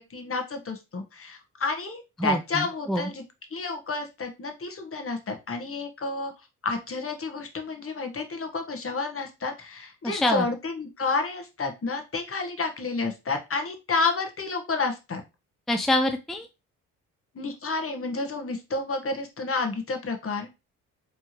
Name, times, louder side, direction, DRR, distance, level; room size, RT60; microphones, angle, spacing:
voice 1, 0.0-3.2 3.5-6.3 6.6-15.2 17.3-20.5, left 3 dB, 40° left, 5 dB, 1.4 m, -30 dB
voice 2, 2.2-3.1 10.0-10.5 15.7-16.5, left 1 dB, ahead, 5 dB, 0.5 m, -26 dB
4.6 x 3.5 x 3.0 m, 0.26 s
supercardioid pair, 60°, 36 cm